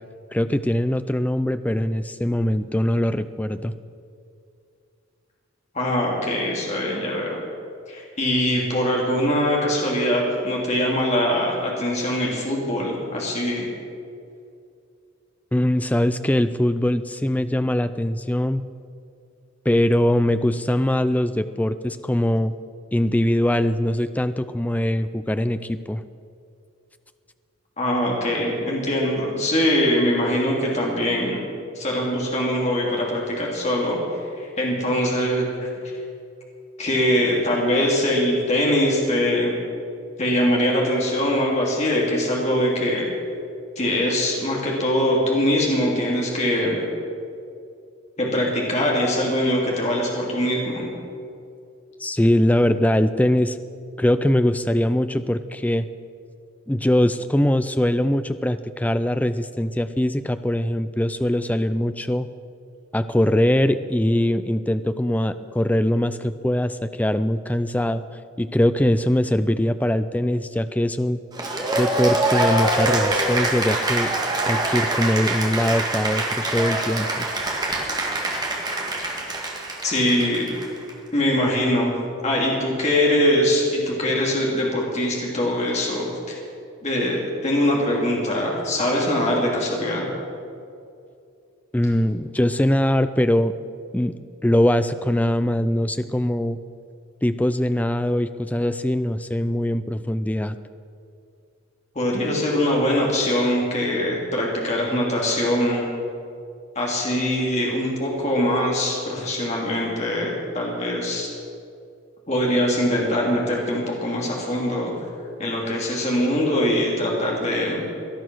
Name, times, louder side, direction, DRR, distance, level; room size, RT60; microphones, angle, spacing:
voice 1, 0.3-3.7 15.5-18.6 19.7-22.5 22.9-26.0 52.0-53.6 54.0-55.9 56.7-62.3 62.9-68.0 68.4-71.2 71.8-74.1 74.5-77.3 91.7-93.5 93.9-94.2 94.4-96.6 97.2-100.6, left 1 dB, 5° left, 11 dB, 0.4 m, -22 dB
voice 2, 5.7-7.4 7.9-13.7 27.8-31.4 31.7-35.9 36.8-39.6 40.2-43.1 43.8-46.8 48.2-50.9 79.8-80.5 81.1-81.9 82.2-86.4 86.8-90.1 101.9-105.8 106.7-111.3 112.3-114.9 115.4-117.8, left 1 dB, 30° left, -3 dB, 2.9 m, -22 dB
Cheering / Applause, 71.3-80.9, right 2 dB, 20° right, 1.7 m, -24 dB
18.5 x 11.5 x 6.2 m, 2.4 s
head